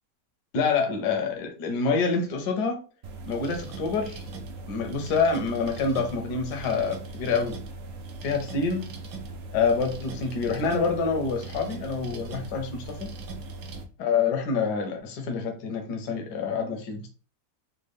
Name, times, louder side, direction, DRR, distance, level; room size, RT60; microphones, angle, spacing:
voice 1, 0.5-2.8 3.3-4.2 4.7-7.6 8.2-8.9 9.5-13.1 14.0-17.1, left 5 dB, 80° left, 3 dB, 1.3 m, -27 dB
sound 1, 3.0-13.8, right 3 dB, 65° right, 1.0 m, -39 dB
3.6 x 2.2 x 3.3 m, 0.37 s
omnidirectional pair, 1.8 m